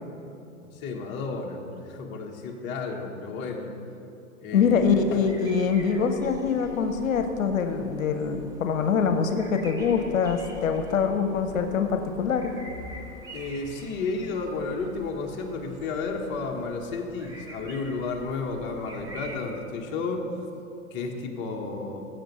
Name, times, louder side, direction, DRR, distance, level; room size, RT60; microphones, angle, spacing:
voice 1, 0.7-3.7 4.4-5.2 13.3-20.2 20.9-22.1, left 4 dB, 30° left, 1 dB, 1.2 m, -32 dB
voice 2, 4.5-12.5, left 6 dB, 75° left, 7 dB, 0.9 m, -24 dB
sound 1, 4.6-19.4, left 1 dB, 10° right, 0.8 m, -45 dB
15.5 x 8.0 x 3.1 m, 2.7 s
hypercardioid pair, 125°, 41 cm